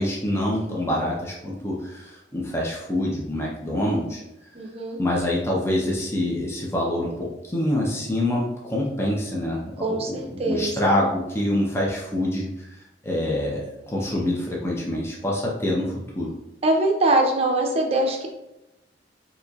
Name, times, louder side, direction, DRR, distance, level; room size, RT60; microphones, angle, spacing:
voice 1, 0.0-4.2 5.0-16.3, left 1 dB, 15° left, -4 dB, 0.6 m, -26 dB
voice 2, 4.5-5.0 9.8-10.7 16.6-18.3, right 2 dB, 35° right, 1 dB, 0.6 m, -22 dB
4.1 x 2.9 x 2.3 m, 0.90 s
head